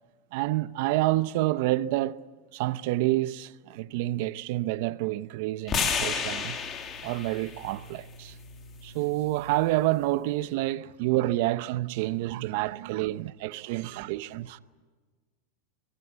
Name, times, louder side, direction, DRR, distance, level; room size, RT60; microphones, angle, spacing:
voice 1, 0.3-2.2 2.5-6.6 7.0-8.3 8.8-14.6, right 17 dB, 60° right, 0.7 m, -28 dB
sound 1, 5.7-9.9, left 6 dB, 25° left, 2.9 m, -33 dB
voice 2, 12.7-13.0 13.7-13.8, right 10 dB, 80° right, 2.1 m, -46 dB
23.5 x 21.5 x 8.1 m
supercardioid pair, 140°, 0 cm